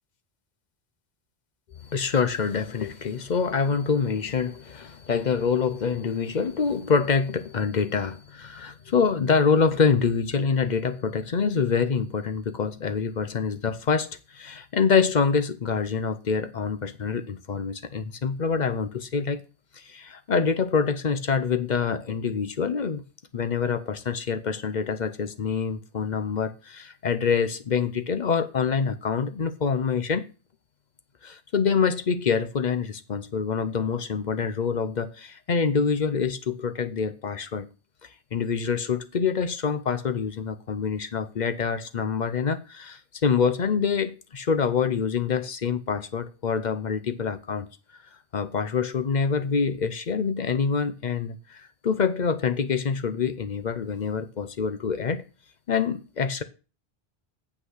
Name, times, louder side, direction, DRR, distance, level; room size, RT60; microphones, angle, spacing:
voice 1, 1.8-19.4 19.7-23.0 23.3-30.2 31.2-37.7 38.3-47.7 48.3-55.2 55.7-56.4, left 5 dB, 50° left, 0.8 m, -26 dB
7.8 x 5.9 x 6.4 m
omnidirectional pair, 1.0 m